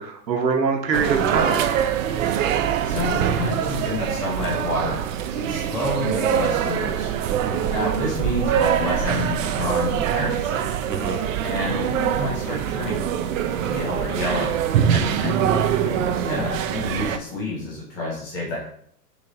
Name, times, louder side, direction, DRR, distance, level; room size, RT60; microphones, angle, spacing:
voice 1, 0.0-1.6 7.3-7.6 10.9-11.2, right 5 dB, 85° right, 4 dB, 1.0 m, -24 dB
sound 1, 0.9-17.2, right 9 dB, 55° right, 0.5 m, -24 dB
voice 2, 2.8-5.0 5.3-7.1 7.7-10.6 11.4-13.0 13.5-14.5 14.9-18.6, left 2 dB, 10° left, -5 dB, 0.3 m, -29 dB
5.9 x 3.2 x 2.6 m, 0.64 s
hypercardioid pair, 110°, 50 cm